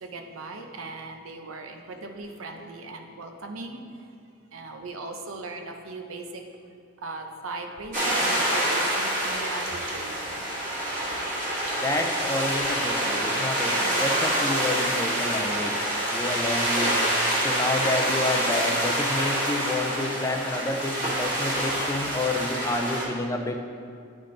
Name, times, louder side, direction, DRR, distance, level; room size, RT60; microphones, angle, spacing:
voice 1, 0.0-3.8 4.5-6.4 7.0-10.4 11.1-11.2, right 3 dB, 80° right, 4 dB, 0.6 m, -38 dB
sound 1, 7.9-23.0, right 1 dB, 40° right, 1.7 m, -26 dB
voice 2, 11.8-15.8 16.1-17.0 17.4-23.7, left 2 dB, 15° left, 4 dB, 0.4 m, -29 dB
10.0 x 3.7 x 3.8 m, 2.4 s
head